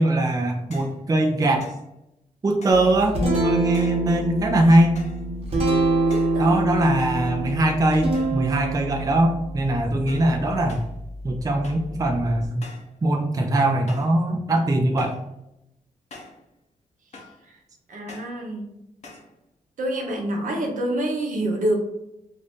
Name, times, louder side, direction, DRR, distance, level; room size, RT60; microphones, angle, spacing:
voice 1, 0.0-1.7 2.4-3.2 3.4-5.0 6.4-10.8 11.2-12.7 13.0-15.2, right 1 dB, 25° right, 3 dB, 0.4 m, -21 dB
sound 1, 0.7-1.0 1.6-1.9 2.6-3.0 3.7-4.1 4.9-5.3 6.1-6.4 7.0-7.6 8.1-8.5 8.8-9.3 10.1-10.4 10.7-11.0 11.6-11.9 12.6-12.9 13.9-14.2 15.0-15.3 16.1-16.4 17.1-17.4 18.1-18.4 19.0-19.3, left 2 dB, 50° left, 0.8 m, -45 dB
Guitar, 2.7-12.5, right 1 dB, 45° right, 1.0 m, -26 dB
voice 2, 6.0-6.6 17.5-17.6 17.9-18.7 19.8-21.8, right 1 dB, 70° right, 1 dB, 0.8 m, -27 dB
2.6 x 2.5 x 3.5 m, 0.86 s
cardioid pair, 70°, 14 cm